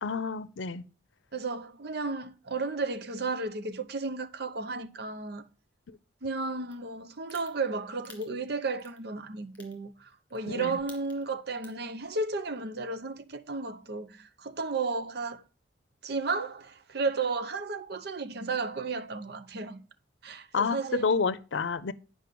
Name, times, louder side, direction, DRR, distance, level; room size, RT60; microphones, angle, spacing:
voice 1, 0.0-0.8 10.5-10.8 20.5-21.9, left 5 dB, 80° left, 0.6 m, -29 dB
voice 2, 1.3-5.4 6.2-15.4 16.0-19.8 20.2-21.2, right 3 dB, 60° right, 0.8 m, -33 dB
sound 1, 6.7-6.8 7.3-7.5 8.0-8.2 8.8-9.0 9.5-9.7 10.3-10.5 10.8-11.2 11.6-11.9, left 3 dB, 10° left, 2.5 m, -49 dB
9.2 x 5.4 x 5.1 m
head